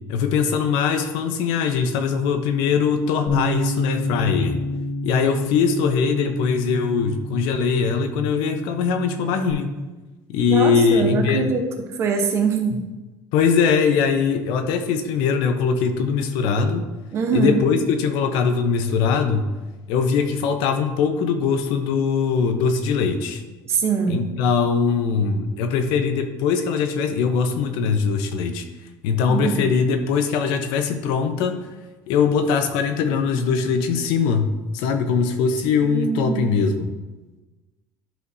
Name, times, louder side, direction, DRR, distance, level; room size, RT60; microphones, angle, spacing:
voice 1, 0.1-4.6 5.0-9.7 10.3-11.5 12.7-12.8 13.3-16.9 17.3-19.5 19.9-23.4 24.1-28.6 29.0-31.6 32.1-36.9, left 5 dB, 70° left, 7 dB, 0.8 m, -21 dB
Bass guitar, 3.3-9.5, left 1 dB, 45° left, 1.5 m, -29 dB
voice 2, 10.5-11.7 11.9-12.8 17.1-17.6 23.7-24.3 29.3-29.6 35.8-36.6, right 5 dB, 35° right, 3 dB, 0.8 m, -23 dB
11.5 x 5.0 x 2.7 m, 1.2 s
cardioid pair, 180°, 8 cm